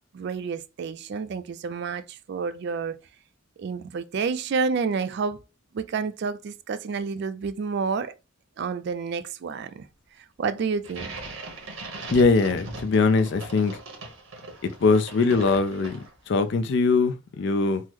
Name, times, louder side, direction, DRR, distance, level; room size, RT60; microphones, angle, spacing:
voice 1, 0.1-3.0 3.6-5.4 5.7-8.1 8.6-9.9 10.4-11.1, right 5 dB, 55° right, 0.3 m, -29 dB
sound 1, 10.8-16.3, right 2 dB, 80° right, 1.1 m, -39 dB
voice 2, 12.1-13.8 14.6-17.8, left 4 dB, 60° left, 0.4 m, -22 dB
3.6 x 2.1 x 3.0 m
head